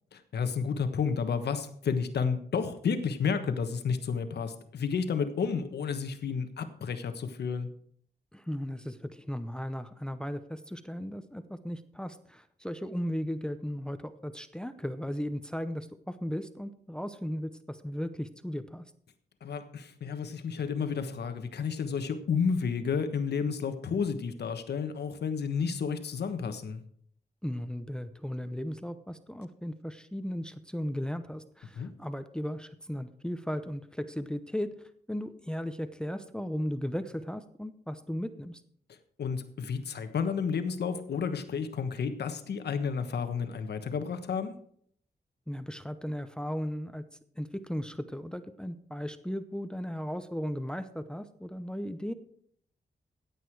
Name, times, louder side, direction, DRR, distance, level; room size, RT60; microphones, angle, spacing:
voice 1, 0.3-7.7 19.4-26.8 31.8-31.9 39.2-44.5, left 6 dB, 85° left, 9 dB, 1.3 m, -31 dB
voice 2, 8.3-18.8 27.4-34.7 35.1-38.6 45.5-47.0 47.4-52.1, equal, 5° left, 11 dB, 0.7 m, -36 dB
16.0 x 8.3 x 4.7 m, 0.64 s
wide cardioid pair, 105°, 17 cm